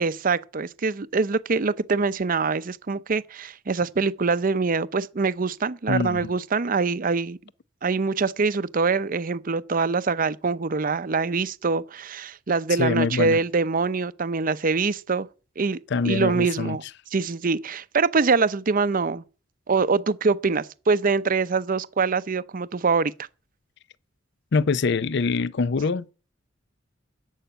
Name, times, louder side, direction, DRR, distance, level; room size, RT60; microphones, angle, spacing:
voice 1, 0.0-7.4 7.8-15.3 15.6-15.8 16.0-16.8 17.1-19.2 19.7-23.1, right 4 dB, 45° right, 0.6 m, -24 dB
voice 2, 5.9-6.3 12.8-13.4 15.9-16.8 24.5-26.1, left 4 dB, 60° left, 0.5 m, -24 dB
14.0 x 5.6 x 9.0 m
head